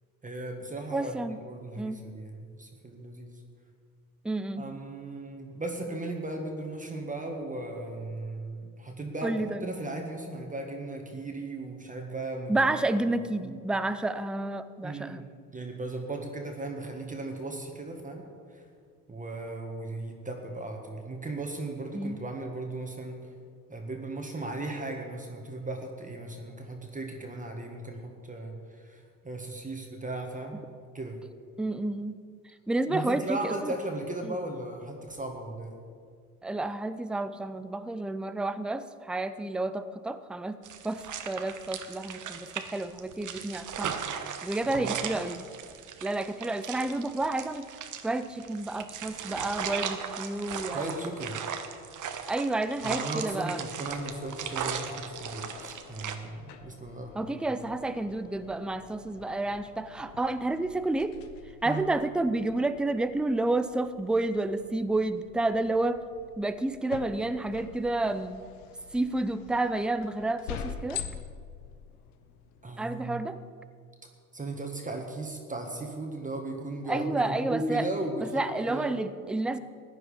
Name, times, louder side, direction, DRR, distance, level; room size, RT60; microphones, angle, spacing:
voice 1, 0.2-3.4 4.6-12.8 13.4-13.6 14.8-18.6 19.1-23.3 23.7-30.6 30.9-31.2 32.9-35.7 44.7-44.9 50.7-51.4 52.8-57.4 61.6-61.9 72.6-73.3 74.3-78.9, right 2 dB, 15° right, 2 dB, 1.7 m, -37 dB
voice 2, 0.9-1.4 1.8-2.0 4.2-4.7 9.2-9.6 12.5-15.2 21.9-22.2 31.6-32.2 32.7-33.7 34.2-34.4 36.4-40.6 40.8-44.0 44.4-45.5 46.0-47.6 48.0-50.9 52.3-53.6 57.2-61.2 61.6-66.0 66.4-68.4 68.9-71.0 72.8-73.4 76.9-77.9 78.2-79.6, right 2 dB, ahead, 12 dB, 0.5 m, -30 dB
sound 1, 40.6-56.2, right 7 dB, 40° right, 1.2 m, -37 dB
sound 2, 53.9-72.8, left 8 dB, 75° left, 1.0 m, -46 dB
15.0 x 9.8 x 5.1 m, 2.2 s
hypercardioid pair, 75°, 45 cm